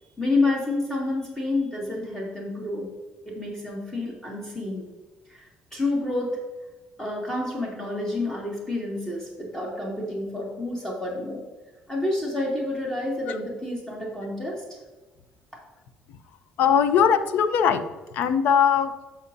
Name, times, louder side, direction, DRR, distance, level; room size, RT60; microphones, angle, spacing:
voice 1, 0.2-2.9 3.3-4.9 5.3-6.4 7.0-11.4 11.9-14.6, left 2 dB, 15° left, -3 dB, 2.1 m, -29 dB
voice 2, 16.6-17.9 18.1-18.9, left 7 dB, 75° left, 10 dB, 0.7 m, -20 dB
13.5 x 4.9 x 2.7 m, 1.2 s
cardioid pair, 85°, 3 cm